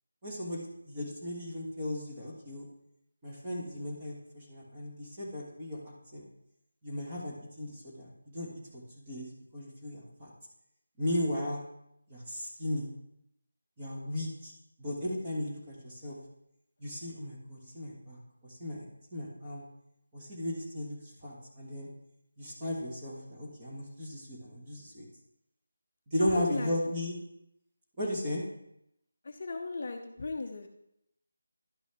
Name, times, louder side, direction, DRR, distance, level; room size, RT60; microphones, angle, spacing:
voice 1, 0.2-2.6 3.2-5.8 6.1-6.2 6.8-8.5 8.7-10.3 11.0-11.6 12.1-12.9 13.8-14.5 14.8-16.2 16.8-18.8 19.1-19.6 20.1-21.9 22.4-25.1 26.1-27.2 28.0-28.4, left 1 dB, 15° right, -4 dB, 1.5 m, -36 dB
voice 2, 26.2-26.7 29.2-30.7, left 3 dB, 35° left, 4 dB, 0.6 m, -36 dB
11.0 x 6.1 x 3.5 m, 0.78 s
figure-of-eight pair, 175°, 0 cm